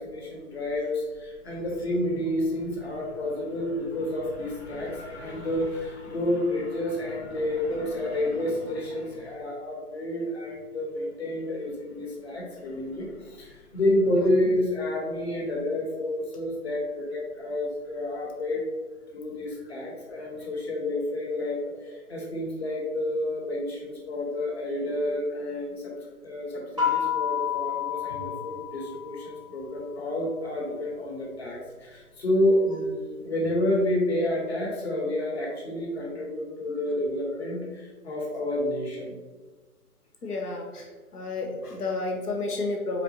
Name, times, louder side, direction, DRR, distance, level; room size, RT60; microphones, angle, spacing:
voice 1, 0.0-18.6 19.1-25.9 26.2-39.2, left 1 dB, 45° left, -1 dB, 1.3 m, -29 dB
sound 1, 26.8-29.5, left 9 dB, 20° right, 0.6 m, -29 dB
voice 2, 40.2-43.0, left 3 dB, 85° left, 1 dB, 1.0 m, -31 dB
4.2 x 4.1 x 2.8 m, 1.3 s
hypercardioid pair, 160°, 44 cm